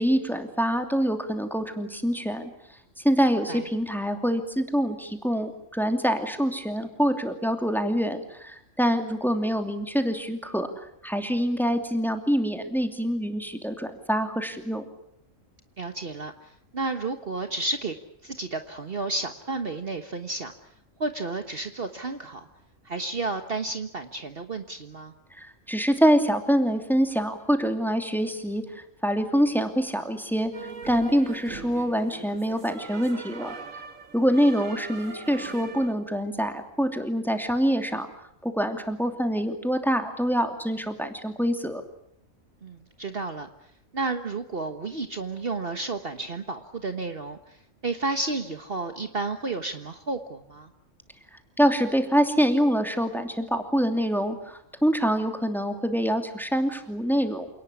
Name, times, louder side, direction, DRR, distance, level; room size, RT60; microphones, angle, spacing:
voice 1, 0.0-2.5 3.0-14.8 25.3-30.5 30.8-33.5 34.1-38.1 38.4-41.8 51.6-57.6, equal, ahead, 6 dB, 2.8 m, -25 dB
voice 2, 15.8-17.9 18.2-20.5 21.0-22.5 22.8-25.1 42.6-43.5 43.9-47.6 47.8-50.7, right 3 dB, 45° right, 7 dB, 1.5 m, -32 dB
sound 1, 30.5-35.9, right 4 dB, 80° right, 2.3 m, -41 dB
28.5 x 18.5 x 10.0 m, 0.75 s
omnidirectional pair, 1.3 m